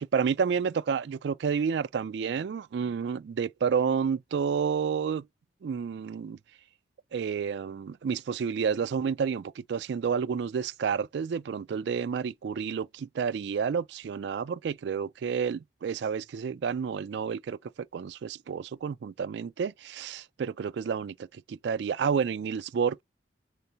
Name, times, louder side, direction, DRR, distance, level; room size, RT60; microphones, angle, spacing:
voice 1, 0.0-5.2 5.6-6.4 7.1-17.6 17.9-23.0, right 6 dB, 65° right, 0.3 m, -30 dB
3.7 x 3.3 x 2.7 m
head